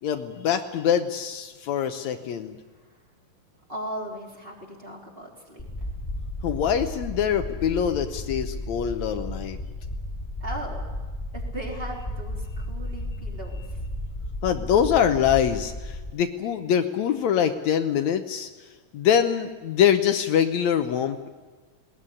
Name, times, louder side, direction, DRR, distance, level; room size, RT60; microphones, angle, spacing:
voice 1, 0.0-2.6 6.4-9.6 14.4-18.5 18.9-21.3, left 8 dB, 75° left, 7 dB, 2.2 m, -24 dB
voice 2, 3.7-6.0 10.4-10.8 11.3-13.8, right 1 dB, 20° right, -2 dB, 3.9 m, -38 dB
sound 1, 5.6-16.1, left 1 dB, 10° left, 3.3 m, -34 dB
20.0 x 18.5 x 9.9 m, 1.3 s
omnidirectional pair, 3.3 m